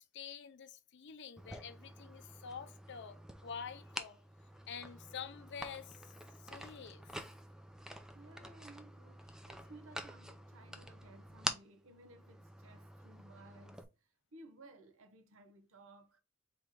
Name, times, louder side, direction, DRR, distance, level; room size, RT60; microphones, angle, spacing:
voice 1, 0.0-4.2 4.7-5.9 6.4-7.0, left 7 dB, 55° left, 0.5 m, -47 dB
sound 1, 1.4-13.8, equal, 5° right, 0.4 m, -47 dB
voice 2, 8.1-16.2, right 2 dB, 65° right, 0.8 m, -58 dB
3.8 x 3.0 x 4.5 m
head